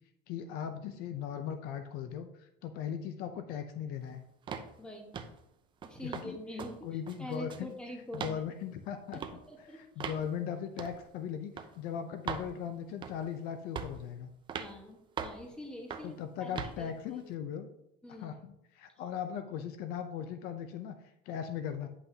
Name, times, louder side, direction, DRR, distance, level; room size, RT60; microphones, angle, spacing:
voice 1, 0.3-4.2 6.0-6.4 6.8-7.7 8.1-9.2 9.7-14.3 16.0-17.7 18.2-18.4 18.7-21.0 21.2-21.9, left 8 dB, 55° left, 8 dB, 0.6 m, -38 dB
sound 1, 4.5-4.7 5.1-5.4 5.8-6.3 6.6-6.7 7.1-7.7 8.1-8.4 9.1-9.4 10.0-10.2 10.8-11.0 11.6-11.7 12.3-12.5 13.0-13.3 13.8-14.0 14.5-14.7 15.2-15.4 15.9-16.1 16.6-16.8, right 7 dB, 25° right, 0.6 m, -39 dB
voice 2, 4.8-5.1 5.8-8.4 9.1-10.1 14.6-17.3 18.0-18.3, left 1 dB, 5° left, 1 dB, 1.4 m, -45 dB
9.5 x 5.7 x 2.8 m, 0.81 s
supercardioid pair, 135°, 19 cm